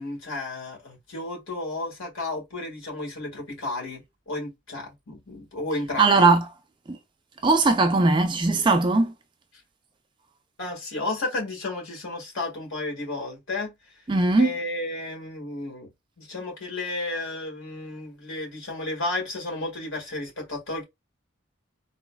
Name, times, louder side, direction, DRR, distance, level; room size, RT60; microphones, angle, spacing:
voice 1, 0.0-4.0 4.3-6.3 10.6-13.7 14.4-15.9 16.2-20.8, left 2 dB, 75° left, 1.9 m, -32 dB
voice 2, 6.0-6.5 6.9-7.0 7.4-9.1 14.1-14.5, right 3 dB, 25° right, 0.3 m, -19 dB
4.0 x 2.8 x 2.3 m
head